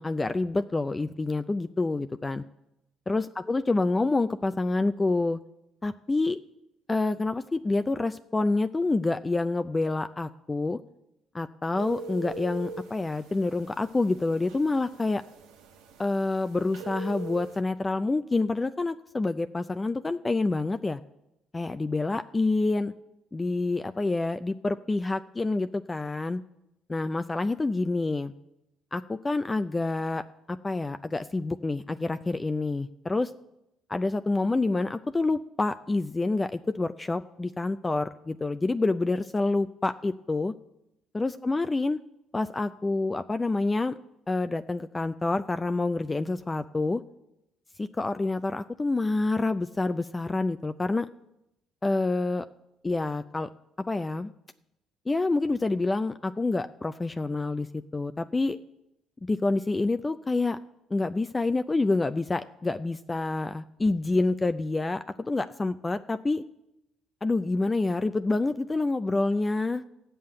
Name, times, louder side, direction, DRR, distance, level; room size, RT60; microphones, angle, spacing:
voice 1, 0.0-2.4 3.1-5.4 5.8-6.4 6.9-10.8 11.3-15.2 16.0-21.0 21.5-22.9 23.3-26.4 26.9-28.3 28.9-33.3 33.9-40.5 41.1-42.0 42.3-44.0 44.3-47.0 47.8-51.1 51.8-52.5 52.8-53.5 53.9-54.3 55.1-57.7 57.9-58.6 59.2-60.6 60.9-66.4 67.2-69.8, left 3 dB, 20° left, 10 dB, 0.4 m, -27 dB
sound 1, 11.8-17.6, right 4 dB, 85° right, 1.2 m, -42 dB
14.5 x 5.6 x 8.8 m, 0.87 s
supercardioid pair, 80°, 0 cm